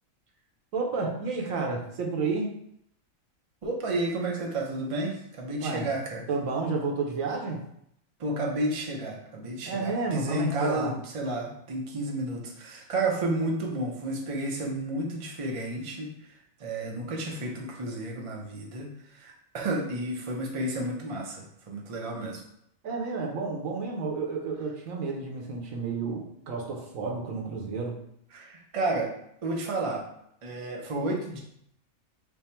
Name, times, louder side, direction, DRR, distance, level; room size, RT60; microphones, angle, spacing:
voice 1, 0.7-2.5 5.6-5.9 6.3-7.6 9.7-10.9 22.8-28.0, right 4 dB, 75° right, 1 dB, 1.1 m, -31 dB
voice 2, 3.6-6.3 8.2-22.4 28.3-29.1 29.4-30.1 30.4-31.4, right 2 dB, 45° right, -1 dB, 0.4 m, -31 dB
3.5 x 2.1 x 4.3 m, 0.74 s
omnidirectional pair, 1.4 m